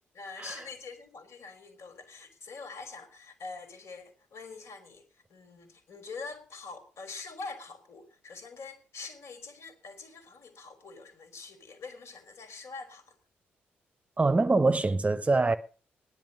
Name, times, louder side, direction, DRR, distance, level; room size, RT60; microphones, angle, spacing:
voice 1, 0.1-13.2, left 4 dB, 55° left, 3.4 m, -45 dB
voice 2, 14.2-15.6, right 3 dB, 25° right, 0.9 m, -24 dB
16.5 x 10.5 x 5.3 m
figure-of-eight pair, 40°, 6 cm